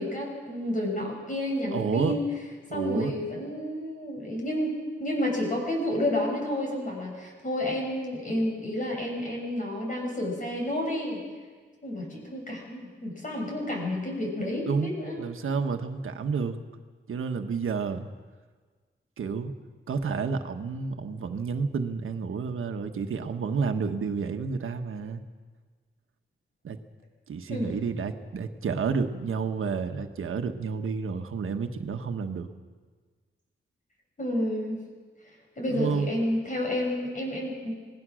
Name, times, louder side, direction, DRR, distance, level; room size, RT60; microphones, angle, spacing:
voice 1, 0.0-2.2 2.7-4.7 5.0-11.2 11.8-15.2 27.5-27.7 34.2-34.8 35.6-37.7, left 1 dB, 40° left, 0 dB, 6.9 m, -30 dB
voice 2, 1.7-2.1 2.7-3.1 14.7-14.9 15.2-16.6 17.1-18.1 19.2-19.5 19.9-25.2 26.6-26.8 27.3-32.5 35.7-36.1, right 5 dB, 80° right, 6 dB, 1.4 m, -30 dB
26.0 x 19.0 x 6.4 m, 1.5 s
wide cardioid pair, 120°, 21 cm